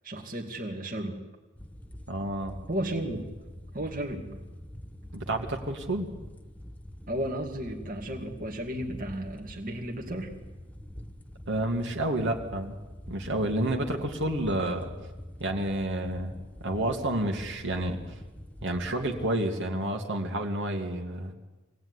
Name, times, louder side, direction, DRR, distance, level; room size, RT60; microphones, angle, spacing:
voice 1, 0.0-1.2 2.7-3.3 3.7-4.4 7.1-10.3, right 1 dB, 40° right, 1 dB, 2.4 m, -34 dB
sound 1, 1.5-19.3, equal, 5° left, 1.2 m, -45 dB
voice 2, 2.1-2.5 5.1-6.1 11.5-12.8 13.1-14.9 15.4-16.3 16.6-18.0 18.6-21.3, right 1 dB, 60° right, 2 dB, 2.6 m, -29 dB
24.5 x 17.5 x 9.8 m, 1.2 s
head